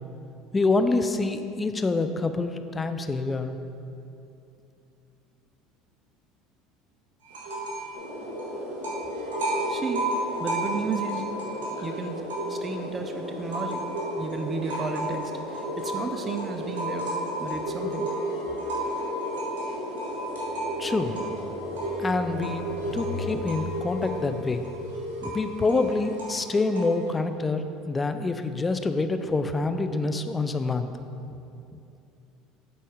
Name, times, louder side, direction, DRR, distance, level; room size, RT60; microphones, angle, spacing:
voice 1, 0.5-3.6 20.8-21.2 22.0-22.6 22.9-24.7 25.2-30.9, left 3 dB, 20° left, 9 dB, 0.4 m, -26 dB
sound 1, 7.3-7.9 8.2-12.8 13.2-27.1, right 1 dB, 85° right, 1.5 m, -33 dB
sound 2, 7.9-23.4, left 1 dB, 85° left, 1.4 m, -37 dB
voice 2, 9.7-10.1 10.4-12.2 12.5-13.9 14.2-17.1 17.4-18.3, right 4 dB, 30° right, 5 dB, 0.5 m, -33 dB
sound 3, 20.3-25.9, left 3 dB, 55° right, 1.5 m, -42 dB
7.1 x 4.1 x 5.0 m, 2.7 s
hypercardioid pair, 80°, 0 cm